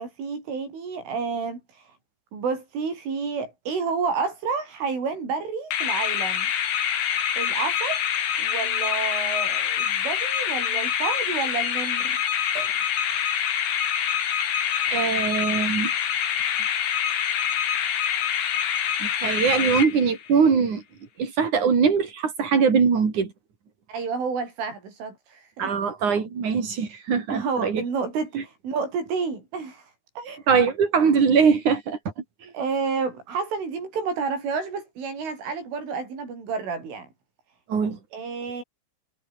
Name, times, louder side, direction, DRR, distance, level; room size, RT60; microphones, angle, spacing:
voice 1, 0.0-2.0 2.3-6.5 7.4-8.0 8.4-12.2 23.9-25.7 27.3-30.5 32.5-37.1 38.1-38.6, right 5 dB, 80° right, 10.5 m, -30 dB
sound 1, 5.7-20.4, left 9 dB, 80° left, 5.7 m, -25 dB
voice 2, 14.9-15.9 19.0-20.8 21.2-23.3 25.6-27.8 28.4-28.5 30.5-32.0 32.4-32.5 37.7-38.0, right 6 dB, 40° right, 5.2 m, -22 dB
omnidirectional pair, 5.6 m